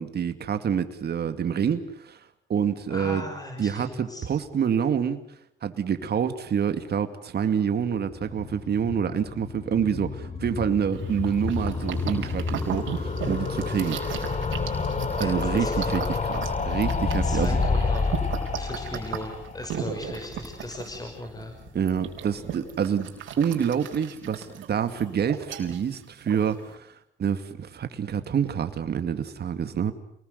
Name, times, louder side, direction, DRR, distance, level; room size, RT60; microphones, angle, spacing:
voice 1, 0.0-2.2 2.5-3.3 3.6-5.2 5.6-14.0 15.2-17.6 21.7-23.1 23.4-26.9 27.2-29.9, right 7 dB, 55° right, 9 dB, 2.4 m, -27 dB
voice 2, 2.9-4.3 15.2-15.7 17.2-18.2 18.6-21.5, left 1 dB, 20° left, 3 dB, 6.1 m, -37 dB
sound 1, 8.0-21.1 21.4-21.5 21.7-21.8 22.0-22.1, left 4 dB, 40° left, 3.5 m, -29 dB
sound 2, 10.9-26.7, right 8 dB, 80° right, 4.6 m, -37 dB
28.5 x 20.5 x 8.1 m, 0.73 s
cardioid pair, 90°, 20 cm